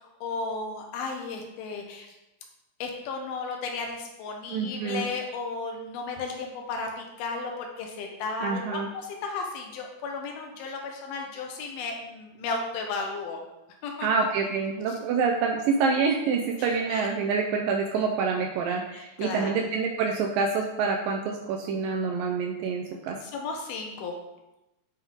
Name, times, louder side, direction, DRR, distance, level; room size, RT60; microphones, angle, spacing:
voice 1, 0.2-2.2 2.8-13.4 13.8-14.1 16.6-17.1 18.9-19.5 23.2-24.2, left 4 dB, 80° left, 2 dB, 2.7 m, -34 dB
voice 2, 4.5-5.1 8.4-8.9 14.0-23.2, right 5 dB, 80° right, 2 dB, 2.0 m, -27 dB
9.1 x 3.5 x 3.5 m, 0.95 s
omnidirectional pair, 4.4 m